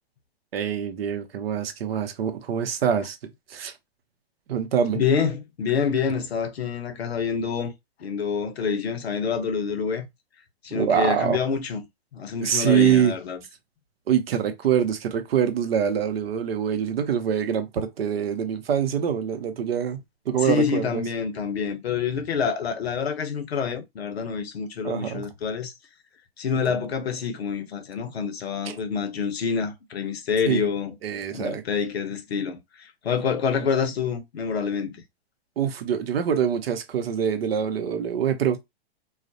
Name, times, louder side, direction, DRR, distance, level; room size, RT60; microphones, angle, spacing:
voice 1, 0.5-3.2 3.5-3.7 4.5-5.0 10.7-11.4 12.4-13.2 14.1-21.0 24.8-25.3 26.5-26.7 28.7-28.8 30.5-30.6 31.0-31.6 33.6-33.7 35.6-38.6, right 8 dB, 75° right, 0.7 m, -24 dB
voice 2, 4.9-7.7 8.0-10.1 10.6-11.9 12.1-13.4 20.4-25.7 26.4-30.9 31.3-35.0, left 6 dB, 85° left, 0.7 m, -27 dB
2.3 x 2.0 x 2.6 m
hypercardioid pair, 120°, 30 cm